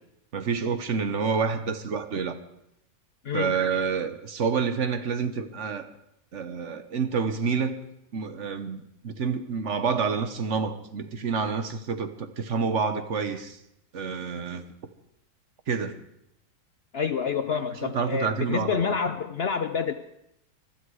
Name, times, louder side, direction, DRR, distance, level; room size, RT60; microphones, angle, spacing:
voice 1, 0.3-2.4 3.3-5.9 6.3-7.8 8.1-13.6 13.9-14.6 15.7-15.9 17.8-18.9, right 5 dB, 45° right, 1.2 m, -28 dB
voice 2, 16.9-19.9, left 6 dB, 70° left, 0.5 m, -28 dB
23.5 x 12.5 x 4.8 m
omnidirectional pair, 1.9 m